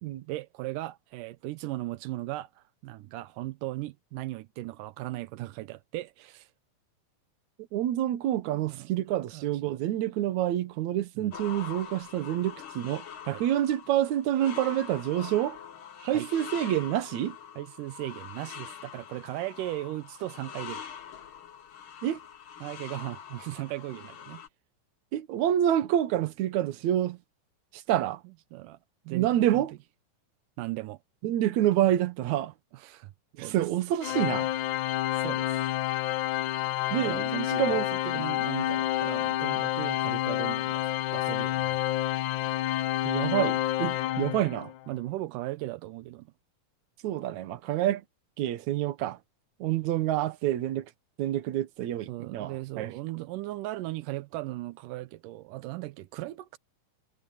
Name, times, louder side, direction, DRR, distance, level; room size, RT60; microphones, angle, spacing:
voice 1, 0.3-6.5 8.4-8.9 9.3-9.8 11.2-11.3 13.3-13.4 16.0-16.3 17.6-20.8 22.6-24.4 28.5-28.8 29.1-29.6 30.6-31.0 32.7-33.6 35.1-35.6 37.0-41.8 44.9-46.3 52.1-56.6, right 17 dB, 90° right, 2.3 m, -37 dB
voice 2, 7.7-15.6 16.1-17.4 22.0-22.2 25.1-27.2 27.7-28.2 29.1-29.7 31.2-32.5 33.4-34.5 36.9-37.2 37.6-37.9 43.0-44.7 47.0-48.0 48.4-49.2 49.6-50.9 51.2-52.9, right 12 dB, 65° right, 2.3 m, -27 dB
sound 1, 11.3-24.5, left 8 dB, 50° left, 1.7 m, -44 dB
Organ, 34.0-44.8, left 14 dB, 75° left, 2.1 m, -29 dB
omnidirectional pair, 3.8 m